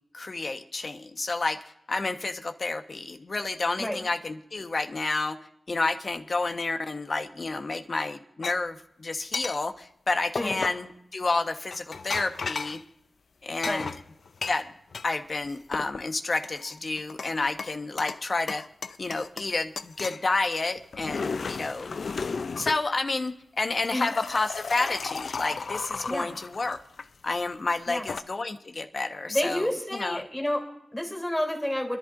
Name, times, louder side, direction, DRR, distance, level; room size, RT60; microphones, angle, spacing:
voice 1, 0.1-1.6 1.9-5.4 5.7-12.8 13.4-13.9 14.5-14.7 15.0-18.6 19.0-22.0 22.6-26.8 27.2-30.2, left 3 dB, 55° left, 6 dB, 1.2 m, -30 dB
sound 1, 8.4-8.6 9.3-9.6 10.4-10.9 11.7-12.8 13.6-15.1 15.4-16.0 16.4-17.3 17.6-18.2 18.5-19.5 19.8-20.2 20.8-22.8 23.6-27.1 27.8-28.2, left 4 dB, 75° left, 0.5 m, -34 dB
voice 2, 29.3-32.0, left 1 dB, 10° left, 1 dB, 3.4 m, -30 dB
28.5 x 11.0 x 2.6 m, 0.78 s
cardioid pair, 45°, 0 cm